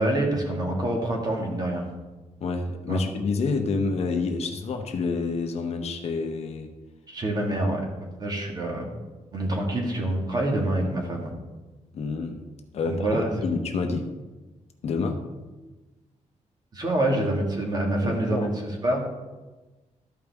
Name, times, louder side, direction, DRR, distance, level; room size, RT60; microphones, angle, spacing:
voice 1, 0.0-1.8 2.9-3.0 7.1-8.9 9.3-11.3 12.8-13.3 16.7-19.0, right 1 dB, 35° right, 0 dB, 1.8 m, -26 dB
voice 2, 2.4-6.7 11.9-12.4 12.7-14.1 14.8-15.2 18.0-18.5, left 4 dB, 60° left, 5 dB, 0.9 m, -28 dB
13.5 x 5.3 x 3.5 m, 1.2 s
cardioid pair, 140°, 12 cm